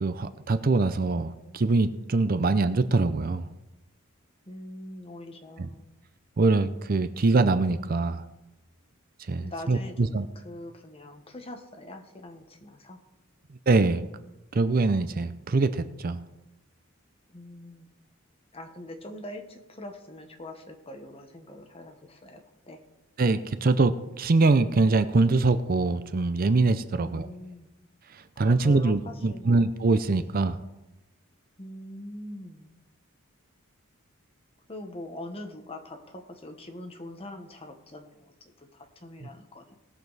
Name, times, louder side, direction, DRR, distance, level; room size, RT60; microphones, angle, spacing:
voice 1, 0.0-3.5 6.4-8.2 9.3-10.3 13.7-14.0 14.5-16.2 23.2-27.3 28.4-30.6, right 3 dB, 45° right, 12 dB, 0.5 m, -23 dB
voice 2, 4.5-5.8 9.3-13.0 17.3-17.9 18.5-22.4 22.7-22.8 27.0-27.7 28.4-29.5 31.6-32.7 34.7-38.3 38.7-39.7, left 1 dB, 25° left, 4 dB, 1.2 m, -43 dB
18.5 x 6.9 x 4.1 m, 0.98 s
head